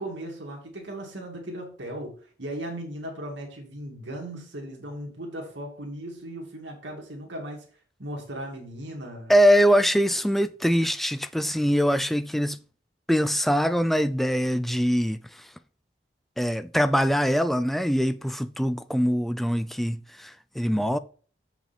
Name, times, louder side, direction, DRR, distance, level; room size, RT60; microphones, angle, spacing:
voice 1, 0.0-7.6 8.0-9.3 20.7-21.0, right 1 dB, 80° right, 2.4 m, -37 dB
voice 2, 9.3-12.6 13.1-15.2 16.4-21.0, equal, ahead, 0.3 m, -23 dB
7.1 x 5.8 x 4.2 m
head